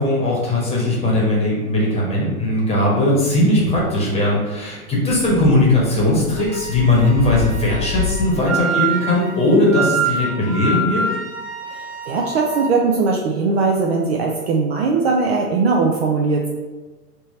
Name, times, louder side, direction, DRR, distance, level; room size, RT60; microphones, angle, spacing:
voice 1, 0.0-11.0, left 1 dB, 15° left, -5 dB, 1.1 m, -18 dB
sound 1, 3.6-3.9 4.9-8.3, left 7 dB, 60° left, 0.5 m, -28 dB
Wind instrument woodwind instrument, 6.4-12.7, right 4 dB, 60° right, 1.3 m, -26 dB
voice 2, 11.7-16.5, right 4 dB, 45° right, -1 dB, 0.5 m, -19 dB
3.5 x 2.8 x 4.1 m, 1.2 s
hypercardioid pair, 115°, 46 cm